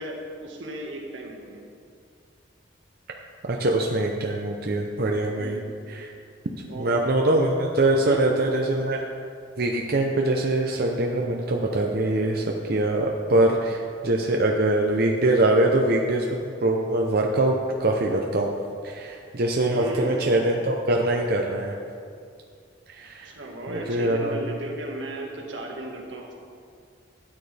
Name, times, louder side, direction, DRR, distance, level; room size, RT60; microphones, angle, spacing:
voice 1, 0.0-1.6 5.4-5.7 6.6-7.0 8.0-8.3 19.6-20.5 23.2-26.3, right 1 dB, 85° right, 0 dB, 1.7 m, -36 dB
voice 2, 3.4-5.6 5.9-6.1 6.7-9.0 9.6-18.5 18.8-21.7 22.9-23.3 23.7-24.5, right 1 dB, 55° right, 0 dB, 0.7 m, -23 dB
13.0 x 9.2 x 3.4 m, 2.3 s
head